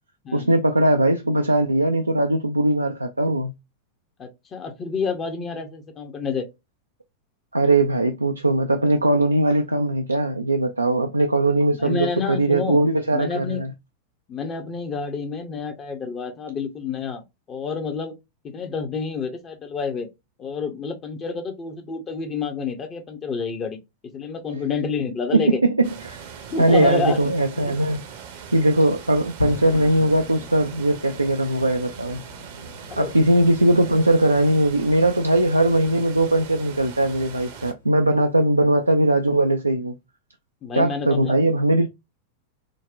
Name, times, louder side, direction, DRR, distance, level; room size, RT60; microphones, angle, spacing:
voice 1, 0.3-3.5 7.5-13.7 25.3-26.2 26.6-28.0 28.5-32.2 33.0-40.0 40.7-41.9, right 1 dB, 85° right, 0.3 m, -20 dB
voice 2, 4.2-6.5 11.7-12.8 13.1-13.6 14.3-18.1 18.4-20.1 20.4-23.8 24.1-25.6 26.5-27.3 27.7-27.8 32.9-33.1 40.6-41.4, left 5 dB, 25° left, 0.6 m, -29 dB
sound 1, 25.8-37.7, right 7 dB, 55° right, 0.7 m, -40 dB
sound 2, 29.4-39.6, left 3 dB, 80° left, 1.4 m, -41 dB
3.9 x 2.1 x 2.4 m
figure-of-eight pair, 90°, 0 cm